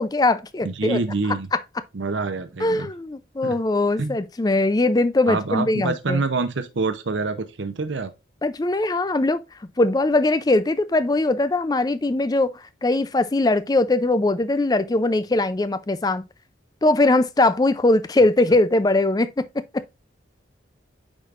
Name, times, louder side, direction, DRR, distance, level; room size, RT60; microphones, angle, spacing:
voice 1, 0.0-1.0 1.5-1.6 2.6-6.2 8.4-9.4 9.8-12.5 12.8-16.2 16.8-19.8, left 2 dB, 20° left, 0.4 m, -21 dB
voice 2, 0.6-1.5 1.9-2.9 3.4-3.6 4.0-4.1 5.3-8.1, right 3 dB, 75° right, 0.7 m, -26 dB
8.8 x 5.0 x 2.5 m
head